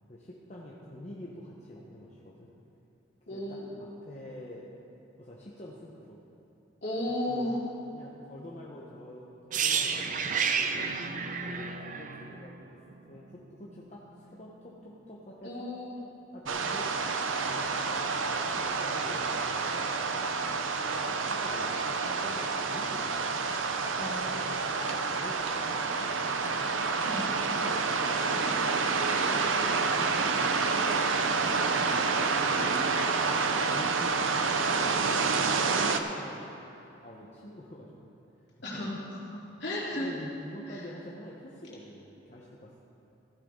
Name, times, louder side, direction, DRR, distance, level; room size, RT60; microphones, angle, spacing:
voice 1, 0.1-2.5 3.3-4.7 5.2-6.2 7.3-7.5 7.9-12.8 13.1-15.7 16.3-16.9 17.4-18.1 18.4-19.9 20.9-23.7 24.2-26.7 27.6-27.7 28.1-33.0 33.4-36.5 37.0-38.1 38.7-38.9 39.9-42.8, left 1 dB, 35° left, -5 dB, 1.1 m, -46 dB
voice 2, 3.3-3.7 6.8-7.6 15.4-16.0 24.0-24.2 27.0-27.3 38.6-39.2 39.6-40.1 40.7-40.8, left 1 dB, 60° left, -6 dB, 3.1 m, -34 dB
sound 1, 9.5-13.4 13.6-13.8, right 6 dB, 40° right, 0.5 m, -31 dB
sound 2, 16.5-36.0, right 4 dB, 85° right, 0.7 m, -28 dB
14.5 x 11.5 x 3.8 m, 3.0 s
head